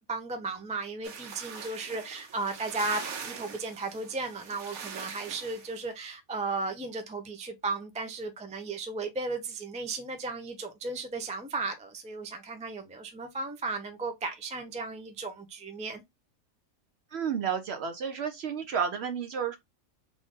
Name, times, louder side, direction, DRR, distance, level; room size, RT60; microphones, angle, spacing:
voice 1, 0.0-16.0, right 3 dB, 10° right, 0.3 m, -35 dB
sound 1, 1.0-5.7, right 6 dB, 90° right, 1.3 m, -42 dB
voice 2, 17.1-19.6, right 7 dB, 65° right, 0.7 m, -31 dB
3.7 x 2.6 x 3.5 m
omnidirectional pair, 1.5 m